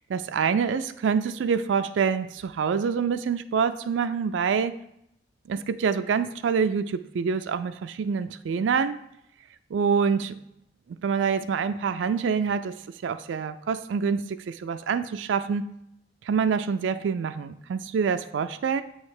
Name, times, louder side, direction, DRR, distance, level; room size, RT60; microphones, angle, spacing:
voice 1, 0.1-4.7 5.5-9.0 9.7-10.3 10.9-12.7 13.0-15.7 16.2-18.8, right 6 dB, 85° right, 10 dB, 0.3 m, -26 dB
7.6 x 3.2 x 4.8 m, 0.79 s
head